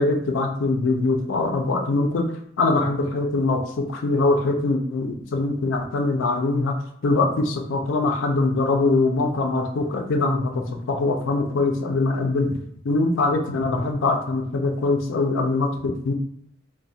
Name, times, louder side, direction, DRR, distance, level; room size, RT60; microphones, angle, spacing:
voice 1, 0.0-2.3 2.6-6.7 7.0-12.5 12.8-16.1, left 3 dB, 70° left, 4 dB, 0.4 m, -22 dB
2.3 x 2.1 x 2.7 m, 0.70 s
head